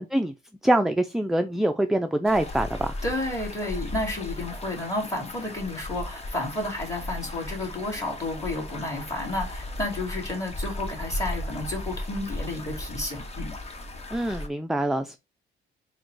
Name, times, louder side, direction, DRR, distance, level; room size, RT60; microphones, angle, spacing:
voice 1, 0.6-3.0 14.1-15.2, right 1 dB, ahead, 0.3 m, -24 dB
sound 1, 2.2-14.5, left 1 dB, 30° left, 0.9 m, -36 dB
voice 2, 3.0-13.5, left 2 dB, 15° left, 2.2 m, -31 dB
3.8 x 2.2 x 4.5 m
cardioid pair, 90°, 20 cm